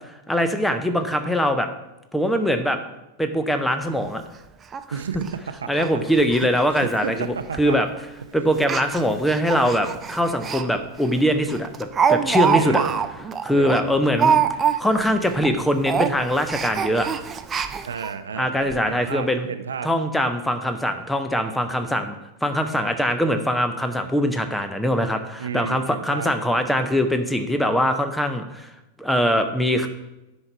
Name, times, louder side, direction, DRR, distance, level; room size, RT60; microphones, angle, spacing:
voice 1, 0.3-1.7 2.1-2.8 3.2-4.2 5.7-7.9 8.3-12.8 13.4-17.1 18.3-19.5 19.8-22.2 22.4-28.7 29.0-29.9, equal, 5° left, 7 dB, 0.8 m, -22 dB
Speech, 3.8-3.9 4.3-4.4 4.7-4.8 5.1-5.3 5.7-5.9 6.2-6.4 6.7-6.8 7.6-7.8 8.6-10.6 11.0-11.1 11.5-15.1 15.3-15.5 15.8-18.1 18.7-18.8 19.1-19.2, right 7 dB, 20° right, 0.5 m, -24 dB
voice 2, 4.9-5.9 6.7-7.8 12.6-13.0 13.5-13.9 17.9-19.9 25.4-26.3, right 6 dB, 70° right, 11 dB, 0.5 m, -32 dB
9.6 x 5.4 x 4.5 m, 0.94 s
figure-of-eight pair, 90°, 0 cm